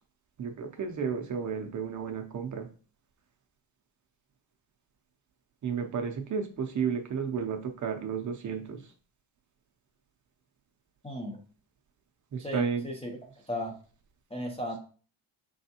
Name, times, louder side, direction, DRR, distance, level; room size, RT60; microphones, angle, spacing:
voice 1, 0.4-2.7 5.6-8.8 12.3-12.8, right 6 dB, 40° right, 4 dB, 0.5 m, -32 dB
voice 2, 11.0-11.4 12.4-13.2 13.5-13.8 14.3-14.8, left 1 dB, 15° left, 0 dB, 0.4 m, -35 dB
4.7 x 3.4 x 2.8 m, 0.39 s
cardioid pair, 175°, 47 cm